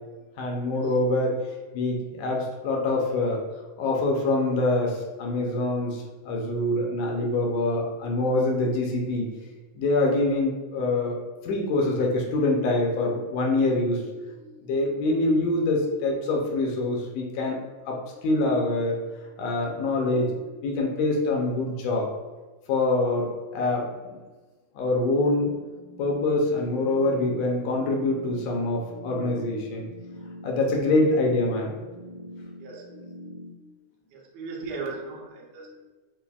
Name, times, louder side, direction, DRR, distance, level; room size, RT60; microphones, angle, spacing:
voice 1, 0.4-1.4 1.7-3.4 3.8-9.3 9.7-11.2 11.4-14.0 14.7-17.6 17.9-18.9 19.4-22.1 22.7-24.2 24.7-25.4 26.0-29.9 30.4-31.7 33.2-33.3, left 2 dB, 80° left, -1 dB, 1.5 m, -25 dB
sound 1, 25.4-33.5, left 1 dB, 45° right, 1.5 m, -44 dB
voice 2, 32.6-33.0 34.1-35.9, right 4 dB, 70° right, -3 dB, 1.9 m, -38 dB
5.5 x 2.5 x 2.3 m, 1.3 s
omnidirectional pair, 3.6 m